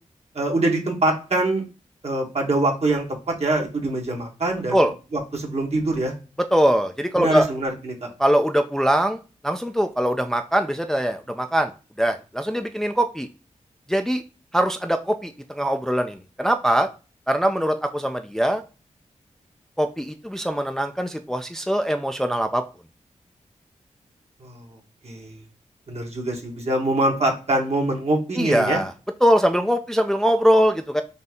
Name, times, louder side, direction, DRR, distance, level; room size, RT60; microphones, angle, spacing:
voice 1, 0.3-1.6 2.0-4.9 5.1-6.1 7.2-8.1 24.4-24.7 25.0-25.4 25.9-28.8, right 2 dB, 55° right, 1 dB, 1.4 m, -24 dB
voice 2, 6.5-7.5 8.2-11.7 12.0-13.3 13.9-14.2 14.5-16.9 17.3-18.6 19.8-22.6 28.4-28.9 29.2-31.0, equal, 5° left, 6 dB, 0.4 m, -22 dB
4.0 x 2.8 x 3.6 m, 0.33 s
cardioid pair, 45°, 13 cm